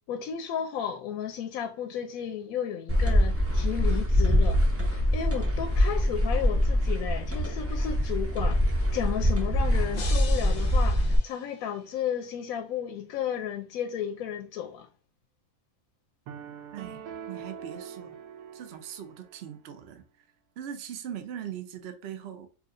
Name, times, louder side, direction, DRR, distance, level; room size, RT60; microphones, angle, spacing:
voice 1, 0.1-8.6 8.9-14.9, left 9 dB, 75° left, 1.0 m, -33 dB
sound 1, 2.9-11.2, equal, 15° right, 0.5 m, -24 dB
sound 2, 9.9-12.1, left 4 dB, 50° left, 0.5 m, -42 dB
sound 3, 16.3-19.5, right 8 dB, 75° right, 1.1 m, -43 dB
voice 2, 17.3-18.2 18.5-20.0 20.6-22.5, right 9 dB, 60° right, 0.7 m, -40 dB
4.7 x 2.9 x 2.5 m
omnidirectional pair, 1.6 m